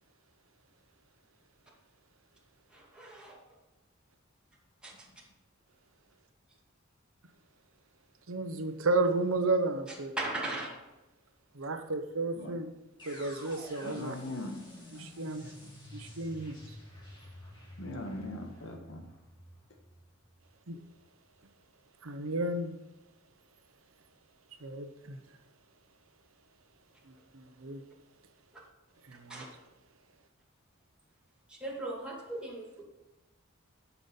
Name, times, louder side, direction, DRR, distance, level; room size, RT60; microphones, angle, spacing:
voice 1, 2.7-3.4 4.8-5.1 9.9-10.7 29.3-29.5 31.5-32.8, right 2 dB, 5° right, -5 dB, 2.3 m, -38 dB
voice 2, 8.3-10.1 11.5-12.7 13.0-14.2 14.9-16.6 20.7-20.8 22.0-22.8 24.6-25.2 27.1-27.8 29.0-29.5, right 2 dB, 75° right, 8 dB, 0.9 m, -33 dB
sound 1, 13.0-20.9, left 1 dB, 25° left, 2.3 m, -50 dB
voice 3, 13.8-14.6 17.8-19.0, left 1 dB, 65° left, 3 dB, 1.7 m, -40 dB
11.5 x 6.0 x 5.4 m, 1.0 s
head